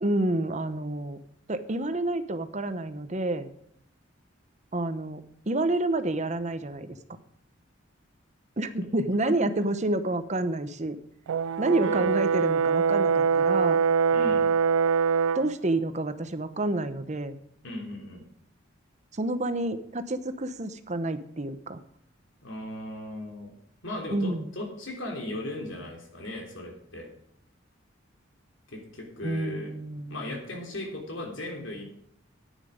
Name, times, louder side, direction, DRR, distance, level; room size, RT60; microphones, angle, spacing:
voice 1, 0.0-1.2 1.5-3.5 4.7-5.2 5.5-7.0 8.6-11.0 11.6-13.8 15.3-17.4 19.1-21.8 24.1-24.5 29.2-30.4, right 2 dB, 35° right, 11 dB, 0.8 m, -29 dB
Brass instrument, 11.3-15.5, right 6 dB, 85° right, 0.4 m, -23 dB
voice 2, 14.1-14.5 17.6-18.2 22.4-23.5 23.8-27.1 28.7-29.7 30.1-31.8, left 1 dB, 70° left, 2 dB, 3.4 m, -37 dB
10.5 x 9.2 x 5.0 m, 0.71 s
head